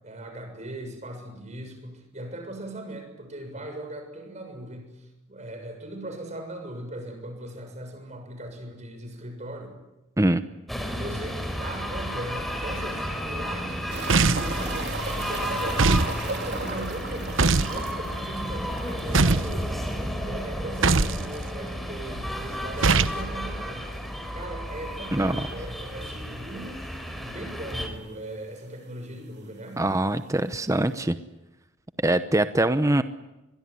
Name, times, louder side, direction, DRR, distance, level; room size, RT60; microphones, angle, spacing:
voice 1, 0.0-9.7 11.0-19.9 20.2-23.9 24.3-29.9, right 1 dB, 35° right, 5 dB, 6.7 m, -39 dB
sound 1, 10.7-27.9, equal, ahead, 3.9 m, -32 dB
sound 2, 13.9-19.3 19.6-19.7 20.0-20.1 22.9-23.0 24.7-24.8 25.5-25.6 25.9-26.0 26.9-27.0 27.1-27.7 28.7-28.8, right 3 dB, 60° right, 3.6 m, -36 dB
sound 3, 14.1-14.6 15.8-16.1 17.4-17.8 19.1-19.5 20.8-21.2 22.8-23.2, right 3 dB, 80° right, 1.1 m, -20 dB
voice 2, 29.8-31.2 32.0-33.0, right 1 dB, 15° right, 11 dB, 0.8 m, -23 dB
24.0 x 22.5 x 9.8 m, 0.99 s
head